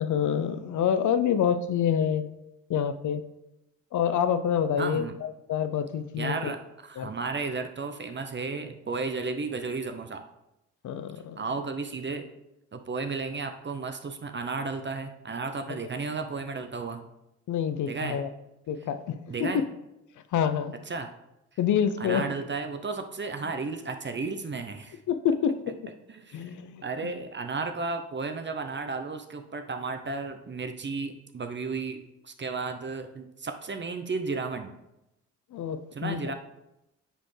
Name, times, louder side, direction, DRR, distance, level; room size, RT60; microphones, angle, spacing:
voice 1, 0.0-2.2 2.7-3.2 3.9-6.5 7.0-7.1 10.8-11.4 15.7-15.8 17.5-18.3 18.7-19.6 20.3-20.7 21.6-22.3 25.1-25.5 26.3-27.1 35.5-36.3, left 8 dB, 60° left, 11 dB, 0.6 m, -27 dB
voice 2, 4.8-5.2 6.2-10.2 11.4-12.3 12.7-17.1 17.8-18.2 19.3-19.7 20.9-21.1 22.0-25.0 26.1-26.5 26.8-34.7 35.9-36.3, right 4 dB, 35° right, 6 dB, 0.7 m, -33 dB
9.1 x 4.1 x 3.3 m, 0.90 s
supercardioid pair, 50°, 33 cm